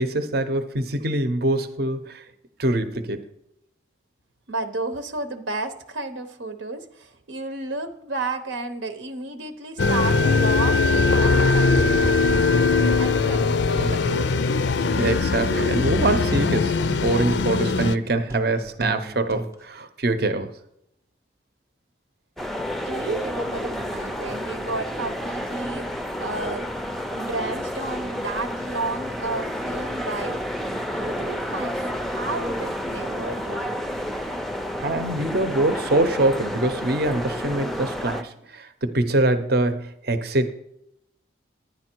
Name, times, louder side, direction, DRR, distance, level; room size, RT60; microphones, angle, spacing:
voice 1, 0.0-2.2 2.6-3.2 14.9-20.5 34.8-40.5, right 2 dB, 55° right, 0.8 m, -24 dB
voice 2, 4.5-12.2 13.0-14.2 22.8-26.7 27.1-33.8, right 2 dB, 85° right, 0.9 m, -32 dB
sound 1, 9.8-18.0, left 4 dB, 65° left, 0.4 m, -21 dB
sound 2, 11.8-13.4 13.8-15.6 15.8-19.5, right 1 dB, 15° right, 0.8 m, -33 dB
sound 3, 22.4-38.2, equal, ahead, 0.5 m, -30 dB
11.0 x 9.9 x 4.5 m
head